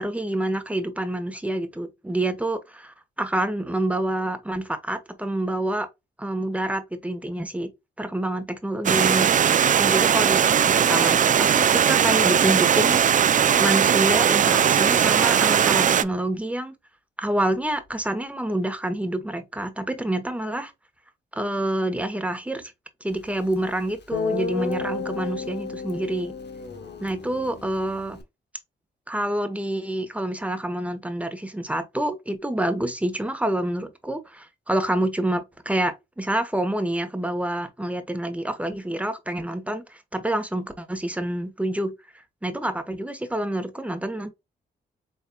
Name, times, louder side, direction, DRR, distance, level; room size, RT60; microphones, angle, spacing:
voice 1, 0.0-5.9 6.2-7.7 8.0-16.7 17.2-20.7 21.3-22.7 23.0-26.3 27.0-28.2 29.1-41.9 42.4-44.3, right 1 dB, 5° right, 1.0 m, -27 dB
Stream, 8.9-16.0, right 8 dB, 40° right, 0.4 m, -19 dB
Guitar, 23.5-23.6 24.1-28.2, left 5 dB, 60° left, 1.1 m, -32 dB
4.2 x 3.4 x 2.3 m
supercardioid pair, 55°, 20 cm